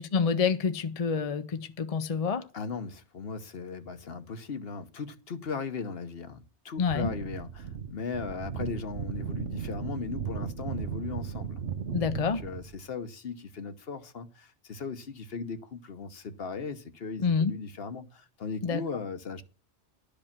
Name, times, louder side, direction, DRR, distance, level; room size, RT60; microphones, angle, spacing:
voice 1, 0.0-2.5 6.8-7.1 11.9-12.4 17.2-17.5 18.6-18.8, left 5 dB, 40° left, 0.6 m, -27 dB
voice 2, 2.5-11.6 12.1-19.4, left 5 dB, 60° left, 1.2 m, -38 dB
sound 1, 6.8-12.8, right 7 dB, 85° right, 1.2 m, -36 dB
12.0 x 5.1 x 7.2 m
omnidirectional pair, 1.2 m